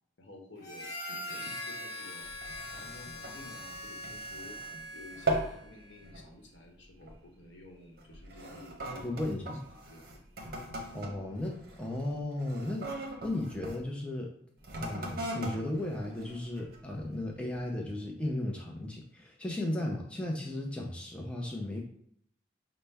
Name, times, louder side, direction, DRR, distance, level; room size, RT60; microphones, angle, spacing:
voice 1, 0.2-2.3 2.7-4.6 4.9-9.5 9.8-10.2, left 2 dB, 85° left, 0 dB, 1.0 m, -51 dB
Harmonica, 0.6-5.6, left 1 dB, 55° left, 0.8 m, -42 dB
sound 1, 2.2-4.8 5.1-5.6 6.0-6.3 7.0-7.3 8.0-13.8 14.6-16.9 17.5-17.6, right 2 dB, 55° right, 0.7 m, -39 dB
voice 2, 9.0-9.6 10.9-14.3 14.8-21.8, left 1 dB, 5° left, -1 dB, 0.5 m, -35 dB
5.5 x 2.1 x 3.4 m, 0.67 s
head